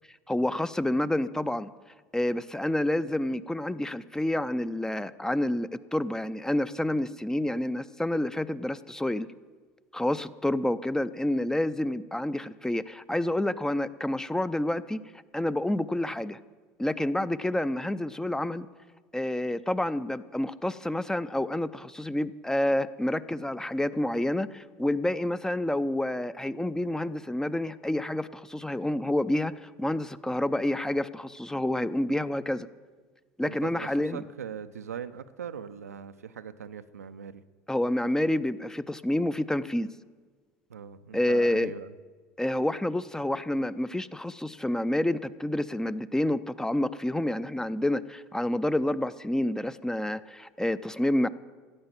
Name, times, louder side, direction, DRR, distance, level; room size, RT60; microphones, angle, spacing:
voice 1, 0.3-1.7 2.1-9.3 9.9-15.0 15.3-16.4 16.8-18.7 19.1-32.7 33.4-34.2 37.7-39.9 41.1-41.7 42.4-51.3, left 1 dB, 5° left, 15 dB, 0.6 m, -28 dB
voice 2, 33.4-37.4 40.7-41.9, right 7 dB, 90° right, 11 dB, 0.6 m, -41 dB
15.0 x 9.5 x 7.3 m, 1.4 s
hypercardioid pair, 75°, 8 cm